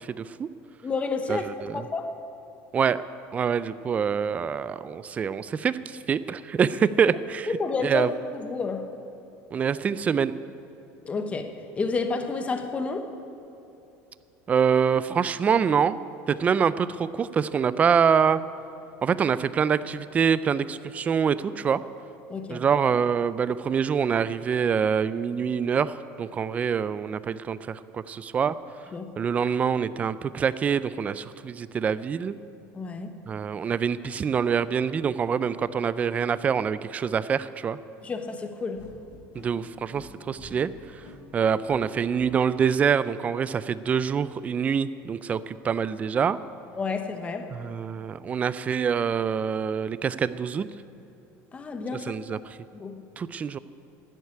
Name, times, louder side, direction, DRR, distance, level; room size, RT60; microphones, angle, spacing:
voice 1, 0.2-0.5 1.3-1.9 2.7-3.0 3.3-7.5 7.8-8.1 9.5-10.3 14.5-16.0 16.3-18.4 19.0-21.8 22.5-28.6 29.2-32.4 33.3-37.8 39.3-41.0 41.3-46.4 47.5-50.7 52.1-52.6 53.2-53.6, right 7 dB, 25° right, 16 dB, 0.3 m, -25 dB
voice 2, 0.8-2.1 7.5-8.1 8.3-8.9 11.0-13.1 22.3-22.6 28.9-29.1 32.7-33.2 38.0-38.8 46.7-47.5 51.5-52.1 52.7-53.0, left 4 dB, 20° left, 7 dB, 1.0 m, -30 dB
sound 1, 38.7-42.3, left 3 dB, 40° left, 2.9 m, -48 dB
11.0 x 8.2 x 9.8 m, 2.8 s
cardioid pair, 140°, 6 cm